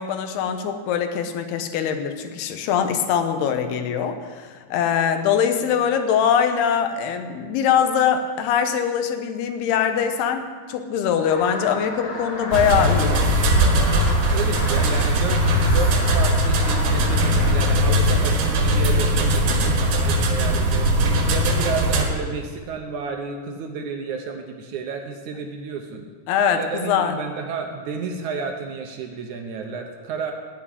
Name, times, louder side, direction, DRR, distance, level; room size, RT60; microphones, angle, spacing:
voice 1, 0.0-13.2 26.3-27.2, left 8 dB, 85° left, 7 dB, 3.0 m, -22 dB
sound 1, 11.2-17.7, left 2 dB, 50° left, 3.4 m, -34 dB
sound 2, 12.5-22.1, equal, 85° right, 3.6 m, -19 dB
voice 2, 14.3-15.4 15.7-20.9 21.3-26.1 26.5-30.3, right 5 dB, 70° right, 4 dB, 1.9 m, -31 dB
15.5 x 6.2 x 9.8 m, 1.5 s
omnidirectional pair, 4.5 m